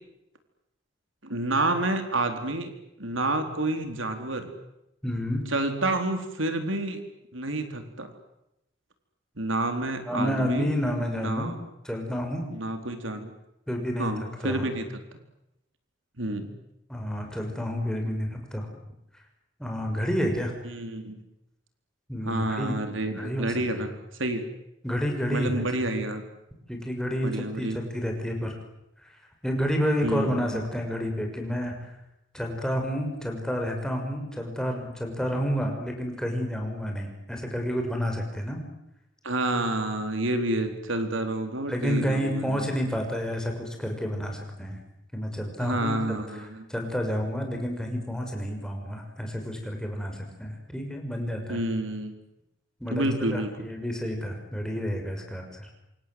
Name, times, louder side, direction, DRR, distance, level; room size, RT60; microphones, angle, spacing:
voice 1, 1.2-2.7 3.0-4.5 5.5-7.0 7.3-8.1 9.4-10.8 11.2-11.5 12.5-13.3 14.0-15.0 16.2-16.5 20.6-21.2 22.2-24.4 25.3-26.2 27.2-27.8 30.0-30.7 39.2-42.7 45.6-46.6 51.5-52.1 52.9-53.6, right 2 dB, 80° right, 7 dB, 4.3 m, -29 dB
voice 2, 5.0-5.4 10.1-11.5 11.8-12.4 13.7-14.6 16.9-18.7 19.6-20.5 22.1-22.8 23.2-23.6 24.8-25.7 26.7-28.6 29.0-31.8 32.3-38.6 41.7-44.8 45.1-45.9 46.4-51.6 52.8-53.0 53.3-55.7, equal, 5° left, 2 dB, 6.3 m, -30 dB
27.5 x 27.0 x 8.0 m, 0.86 s
head